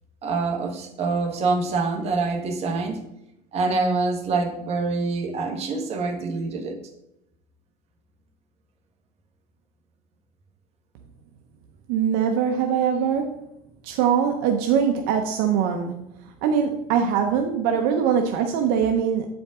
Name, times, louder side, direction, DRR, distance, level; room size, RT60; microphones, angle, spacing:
voice 1, 0.2-3.0 3.5-6.8, right 3 dB, 40° right, 3 dB, 1.4 m, -25 dB
voice 2, 11.9-13.3 13.8-16.0 16.4-19.3, right 7 dB, 70° right, 4 dB, 0.8 m, -22 dB
8.2 x 5.2 x 3.7 m, 0.83 s
cardioid pair, 130°, 16 cm